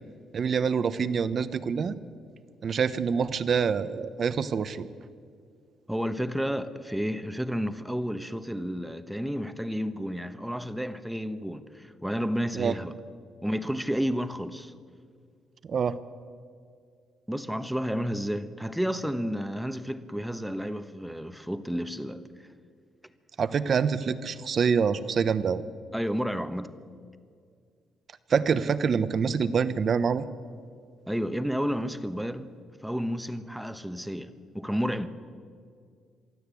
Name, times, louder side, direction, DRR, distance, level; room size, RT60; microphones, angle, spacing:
voice 1, 0.3-1.9 2.6-4.9 12.5-12.7 15.7-16.0 23.4-25.6 28.3-30.3, right 6 dB, 50° right, 1.0 m, -26 dB
voice 2, 5.9-12.9 13.4-14.7 17.3-22.3 25.9-26.7 31.1-32.5 32.8-35.1, equal, 5° right, 1.1 m, -31 dB
24.0 x 13.5 x 8.4 m
cardioid pair, 90°, 0 cm